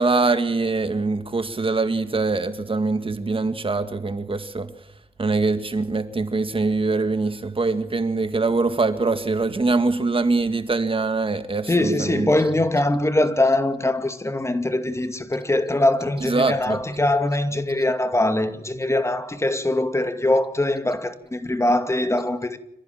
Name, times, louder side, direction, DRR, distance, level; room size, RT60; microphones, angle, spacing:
voice 1, 0.0-4.7 5.2-12.3 16.3-16.8, right 3 dB, 35° right, 2.1 m, -23 dB
voice 2, 11.7-22.6, left 1 dB, 20° left, 2.3 m, -22 dB
26.5 x 15.0 x 7.4 m
cardioid pair, 60°, 15 cm